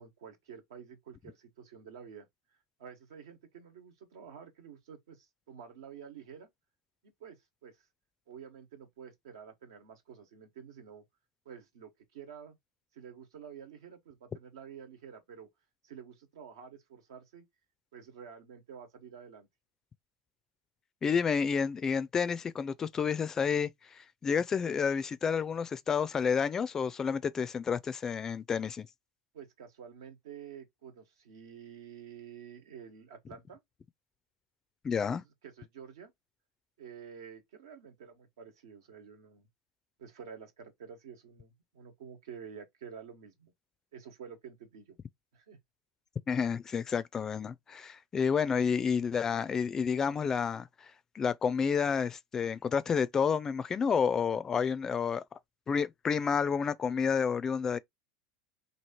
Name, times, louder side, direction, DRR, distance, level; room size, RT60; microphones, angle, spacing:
voice 1, 0.0-2.3 2.8-6.5 7.2-7.9 8.3-11.0 11.4-12.6 12.9-15.5 15.8-17.4 17.9-19.5 29.3-33.6 35.1-35.2 35.4-36.1 36.8-39.5 40.0-43.5 43.9-45.0 45.3-45.6, right 7 dB, 85° right, 1.3 m, -49 dB
voice 2, 21.0-28.9 34.8-35.2 46.3-55.2 55.7-57.8, left 6 dB, 25° left, 0.4 m, -30 dB
3.1 x 2.8 x 4.2 m
supercardioid pair, 110°, 2 cm